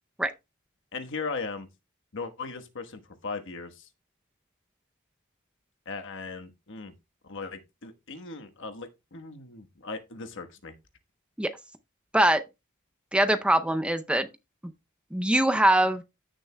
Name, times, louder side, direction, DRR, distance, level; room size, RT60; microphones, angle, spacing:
voice 1, 0.9-1.7 2.1-3.9 5.8-6.9 7.2-10.7, left 4 dB, 60° left, 1.3 m, -38 dB
voice 2, 13.1-14.3 15.1-16.0, right 1 dB, 5° right, 0.6 m, -22 dB
15.0 x 6.6 x 2.2 m
head